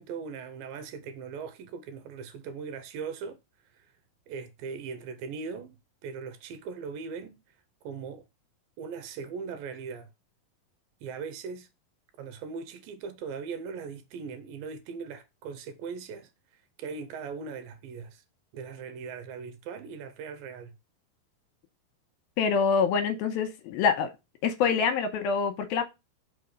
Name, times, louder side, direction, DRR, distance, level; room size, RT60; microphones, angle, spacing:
voice 1, 0.0-3.4 3.7-3.9 4.3-5.8 6.0-7.4 7.8-8.3 8.8-10.1 11.0-11.7 12.2-16.3 16.8-18.2 18.5-20.7, right 5 dB, 80° right, 2.3 m, -39 dB
voice 2, 22.4-24.1 24.4-25.8, left 6 dB, 80° left, 2.7 m, -25 dB
5.4 x 4.9 x 6.2 m
omnidirectional pair, 4.4 m